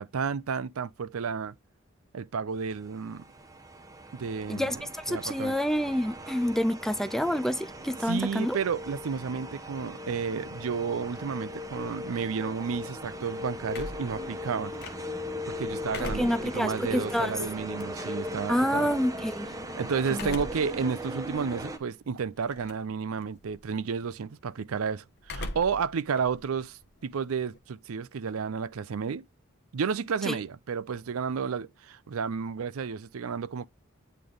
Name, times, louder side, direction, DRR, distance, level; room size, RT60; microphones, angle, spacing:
voice 1, 0.0-1.5 2.1-3.2 4.1-4.8 5.1-5.5 8.0-14.7 15.5-18.9 19.8-29.2 29.7-33.7, right 6 dB, 90° right, 0.5 m, -32 dB
sound 1, 2.8-21.8, equal, 15° right, 0.9 m, -38 dB
voice 2, 4.5-8.6 16.0-17.4 18.5-19.5 20.1-20.3 30.3-30.4, equal, ahead, 0.3 m, -28 dB
sound 2, 13.7-15.3 15.7-18.3 20.1-20.8 21.3-21.4 22.4-22.9 23.2-23.6 25.2-25.9 26.2-27.6, left 2 dB, 55° left, 1.2 m, -40 dB
8.9 x 3.2 x 3.8 m
head